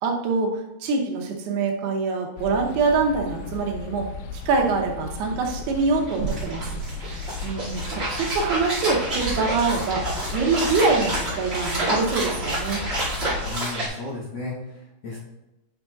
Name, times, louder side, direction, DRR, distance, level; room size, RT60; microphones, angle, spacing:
voice 1, 0.0-10.1 10.3-12.8, right 4 dB, 85° right, 1 dB, 2.9 m, -25 dB
sound 1, 2.4-13.5, left 4 dB, 85° left, 2.0 m, -36 dB
sound 2, 6.0-13.9, right 1 dB, 25° right, 1.5 m, -29 dB
voice 2, 13.5-15.2, left 3 dB, 65° left, -8 dB, 1.5 m, -34 dB
9.4 x 6.2 x 2.3 m, 0.96 s
omnidirectional pair, 4.6 m